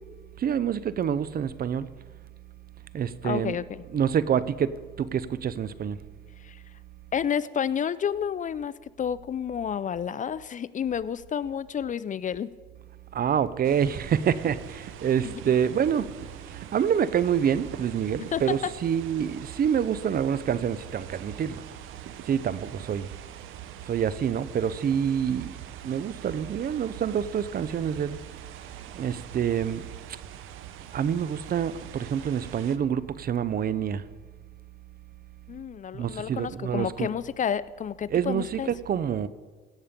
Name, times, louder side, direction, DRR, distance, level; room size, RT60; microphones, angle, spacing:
voice 1, 0.4-1.9 2.9-3.6 3.9-6.0 13.1-16.2 16.5-21.6 22.2-23.1 23.8-25.6 25.8-28.2 28.9-29.9 30.9-34.0 35.9-37.1 38.1-38.6 38.9-39.3, right 8 dB, 50° right, 0.6 m, -27 dB
voice 2, 3.2-3.8 6.4-6.6 7.1-12.5 15.2-15.3 18.3-18.7 35.5-38.7, left 8 dB, 40° left, 0.4 m, -30 dB
sound 1, 13.6-32.8, right 10 dB, 85° right, 0.7 m, -44 dB
17.0 x 7.3 x 5.1 m
cardioid pair, 90°, 20 cm